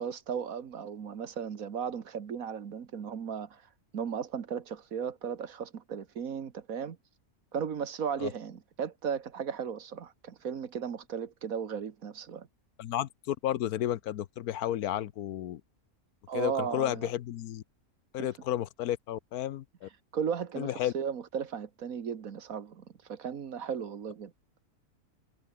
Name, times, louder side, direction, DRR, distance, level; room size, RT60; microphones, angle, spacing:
voice 1, 0.0-3.7 3.9-7.0 7.5-12.5 16.3-17.1 18.2-18.3 20.1-24.3, right 7 dB, 65° right, 1.8 m, -36 dB
voice 2, 12.8-15.6 16.3-17.6 18.1-19.9 20.6-20.9, left 12 dB, 85° left, 1.3 m, -32 dB
omnidirectional pair, 1.6 m